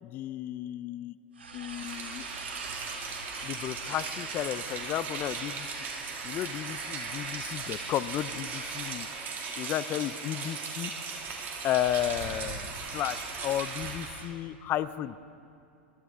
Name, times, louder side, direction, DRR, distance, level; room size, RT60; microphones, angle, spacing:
voice 1, 0.0-1.1 1.5-2.3 3.4-5.7 6.2-9.1 9.6-10.9 11.6-15.2, left 12 dB, 35° left, 16 dB, 0.4 m, -33 dB
sound 1, 1.3-9.0, right 3 dB, 90° right, 2.0 m, -44 dB
Rain, 1.7-14.3, right 4 dB, 35° right, 2.3 m, -38 dB
22.0 x 12.5 x 3.6 m, 2.7 s
hypercardioid pair, 110°, 6 cm